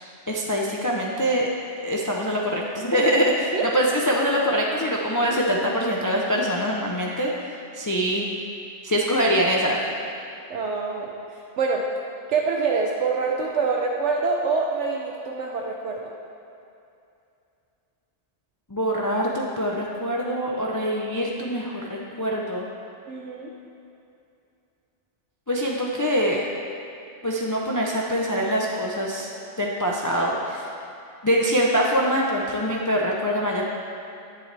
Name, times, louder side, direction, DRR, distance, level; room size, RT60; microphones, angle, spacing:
voice 1, 0.3-1.5 1.8-7.3 7.7-8.3 8.8-9.8 18.7-22.6 25.5-26.4 27.2-29.3 29.6-30.6 31.2-33.6, equal, 20° left, -3 dB, 0.6 m, -24 dB
voice 2, 10.5-11.9 12.3-16.1 23.1-23.5, right 4 dB, 75° right, 0 dB, 1.0 m, -26 dB
10.5 x 10.0 x 3.4 m, 2.6 s
omnidirectional pair, 1.2 m